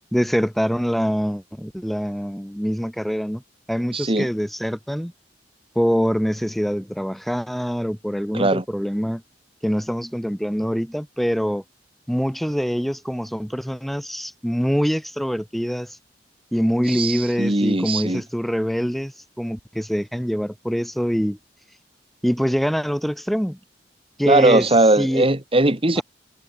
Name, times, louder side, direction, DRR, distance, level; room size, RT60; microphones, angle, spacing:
voice 1, 0.1-3.4 3.7-5.1 5.8-9.2 9.6-11.6 12.1-16.0 16.5-19.1 19.4-21.4 22.2-23.6 24.2-24.6 25.0-25.3 26.0-26.1, equal, ahead, 5.4 m, -24 dB
voice 2, 3.9-4.3 8.3-8.6 16.9-18.2 24.3-26.0, right 2 dB, 30° right, 2.1 m, -19 dB
head